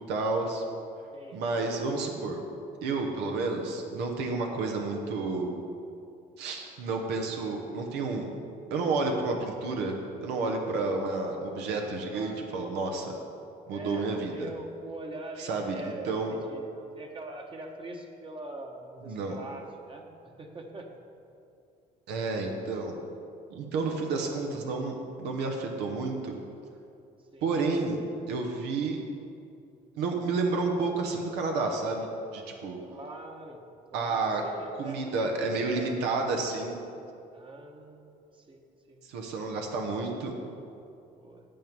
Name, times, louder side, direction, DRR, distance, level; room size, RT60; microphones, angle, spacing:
voice 1, 0.1-0.6 1.3-2.4 2.8-5.5 6.4-8.3 8.7-9.9 10.2-13.1 13.7-14.5 15.4-15.8 16.0-16.3 19.0-19.4 22.1-22.9 23.5-26.4 27.4-28.0 28.3-29.0 29.9-32.1 32.3-32.8 33.9-34.4 34.8-36.8 39.0-40.3, right 3 dB, 90° right, 2 dB, 1.1 m, -30 dB
voice 2, 12.1-12.4 13.7-20.9 27.3-27.5 32.9-33.6 33.9-36.5 37.3-38.6 38.9-39.0 41.1-41.4, right 2 dB, 30° right, 2 dB, 1.1 m, -43 dB
9.1 x 7.3 x 5.3 m, 2.5 s
cardioid pair, 110°, 17 cm